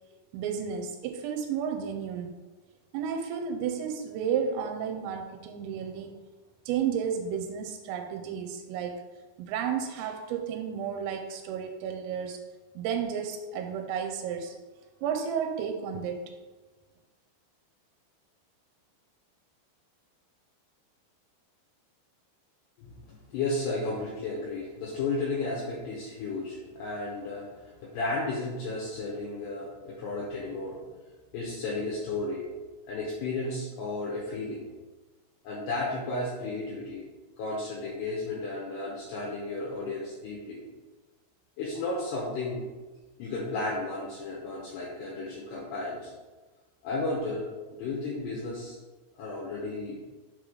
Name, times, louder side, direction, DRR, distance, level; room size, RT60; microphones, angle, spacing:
voice 1, 0.3-2.3 2.9-6.2 6.7-8.9 9.4-12.4 12.8-14.5 15.0-16.3, right 7 dB, 90° right, 4 dB, 3.3 m, -32 dB
voice 2, 23.3-30.8 31.3-32.4 32.9-34.7 35.4-37.0 37.4-40.6 41.6-42.6 43.2-46.1 46.8-47.5 47.7-48.8 49.1-50.0, left 2 dB, 75° left, -5 dB, 2.7 m, -33 dB
7.1 x 3.9 x 4.8 m, 1.3 s
omnidirectional pair, 5.9 m